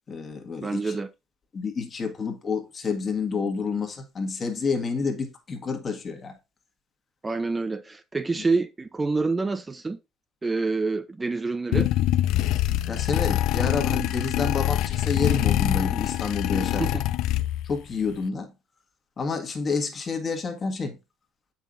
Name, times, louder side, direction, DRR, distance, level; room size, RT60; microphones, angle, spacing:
voice 1, 0.1-1.0 1.5-6.3 12.9-16.8 17.6-18.5 19.2-21.0, left 4 dB, 35° left, 1.6 m, -29 dB
voice 2, 0.6-1.1 7.2-10.0 10.4-11.9 16.8-17.0, right 3 dB, 20° right, 0.5 m, -27 dB
sound 1, 11.7-17.8, left 14 dB, 65° left, 0.3 m, -24 dB
7.2 x 5.7 x 2.6 m
hypercardioid pair, 70°, 0 cm